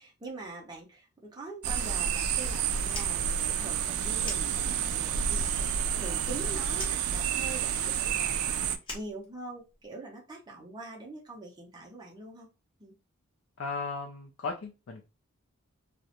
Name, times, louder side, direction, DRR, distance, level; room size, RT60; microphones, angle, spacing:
voice 1, 0.0-8.6 8.9-12.5 12.8-12.9, right 2 dB, 20° right, -1 dB, 0.5 m, -44 dB
sound 1, 1.6-8.8, right 8 dB, 90° right, 0.3 m, -29 dB
Fire, 2.8-5.1 5.4-6.4 6.7-9.9, left 2 dB, 25° left, 0.8 m, -44 dB
voice 2, 13.6-15.0, left 4 dB, 60° left, 3 dB, 0.4 m, -36 dB
2.3 x 2.0 x 2.8 m, 0.30 s
head